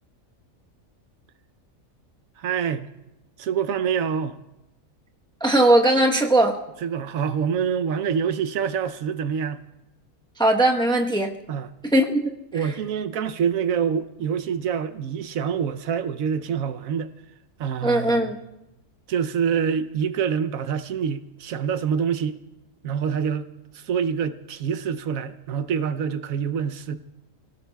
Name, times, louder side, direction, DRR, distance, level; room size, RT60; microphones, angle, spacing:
voice 1, 2.4-2.9 3.4-4.4 6.8-9.6 11.5-11.7 12.5-17.1 17.6-18.3 19.1-22.4 22.8-27.0, right 7 dB, 75° right, 1.1 m, -26 dB
voice 2, 5.4-6.6 10.4-11.3 11.8-12.2 17.8-18.4, right 1 dB, 5° left, 0.8 m, -19 dB
28.0 x 17.5 x 2.3 m
omnidirectional pair, 1.4 m